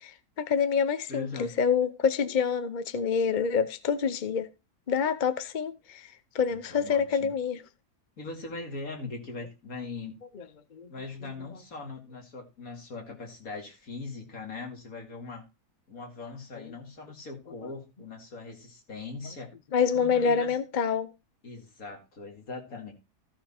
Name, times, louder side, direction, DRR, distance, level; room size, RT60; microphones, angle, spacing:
voice 1, 0.0-4.5 4.9-7.6 10.3-10.4 10.7-10.9 11.2-11.3 17.6-17.7 19.7-21.1, left 6 dB, 40° left, 0.7 m, -27 dB
voice 2, 1.1-1.5 6.5-7.3 8.2-10.2 10.9-15.4 15.9-19.5 19.9-20.5 21.4-22.9, left 3 dB, 60° left, 2.9 m, -40 dB
15.0 x 5.7 x 4.4 m
omnidirectional pair, 1.7 m